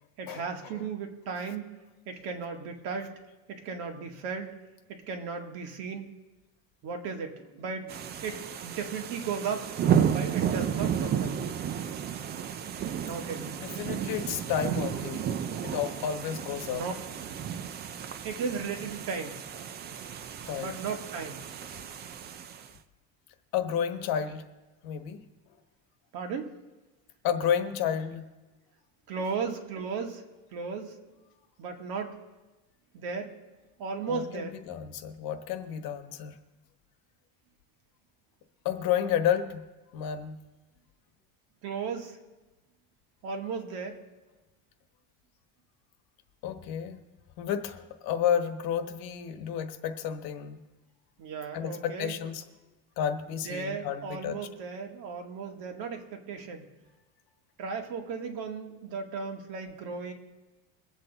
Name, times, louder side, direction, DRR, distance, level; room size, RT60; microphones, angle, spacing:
voice 1, 0.2-1.8 2.1-3.1 3.5-4.5 4.9-6.1 6.8-7.9 8.2-9.7 10.0-12.1 13.0-14.0 16.7-16.9 17.3-17.4 18.2-19.4 20.6-21.4 26.1-26.5 29.1-30.2 30.5-31.0 31.6-32.2 32.9-33.3 33.8-34.5 41.6-42.2 43.2-44.0 51.2-52.1 53.5-56.7 57.6-60.1, right 5 dB, 60° right, 4 dB, 1.8 m, -36 dB
sound 1, 7.9-22.7, right 8 dB, 25° right, 0.3 m, -32 dB
voice 2, 13.6-15.3 15.6-16.8 20.5-20.8 23.5-24.5 24.8-25.2 27.2-28.2 34.1-36.4 38.6-39.6 39.9-40.4 46.4-47.0 47.4-50.6 51.5-52.4 53.0-54.4, left 9 dB, 60° left, 8 dB, 1.2 m, -31 dB
23.0 x 8.2 x 4.0 m, 1.1 s
cardioid pair, 170°, 41 cm